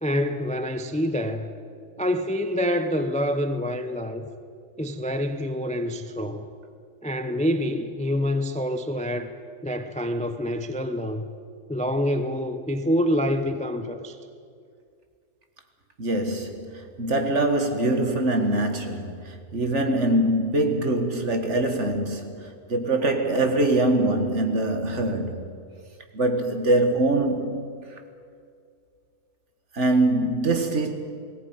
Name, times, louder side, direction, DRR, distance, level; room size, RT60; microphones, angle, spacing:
voice 1, 0.0-1.6 2.0-4.3 4.8-6.5 7.0-9.3 9.6-11.3 11.7-14.2, equal, 10° left, 0.4 m, -26 dB
voice 2, 16.0-25.4 26.1-27.6 29.7-30.9, right 2 dB, 45° right, 1.9 m, -23 dB
19.0 x 17.0 x 9.5 m
omnidirectional pair, 1.8 m